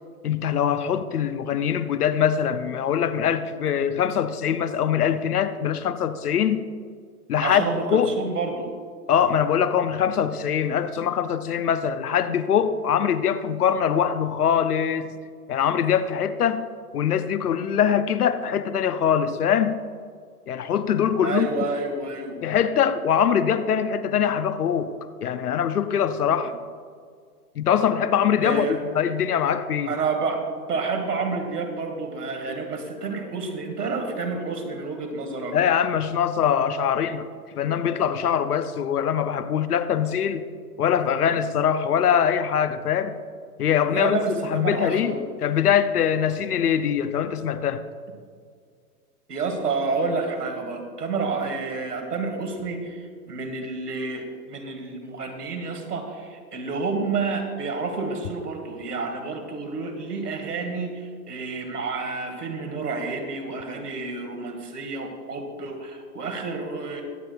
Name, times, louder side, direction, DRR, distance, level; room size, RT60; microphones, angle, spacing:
voice 1, 0.2-6.7 7.3-7.7 7.9-8.1 9.1-15.1 15.5-16.7 16.9-19.8 20.5-21.5 22.4-24.9 25.2-26.5 27.6-30.0 35.5-37.3 37.6-40.4 40.8-43.2 43.6-47.8, left 8 dB, 70° left, 0.7 m, -23 dB
voice 2, 7.4-8.7 21.2-22.4 28.4-28.8 29.9-35.6 43.9-45.2 49.3-67.0, right 4 dB, 75° right, 1.9 m, -29 dB
22.5 x 7.7 x 2.3 m
figure-of-eight pair, 115°, 47 cm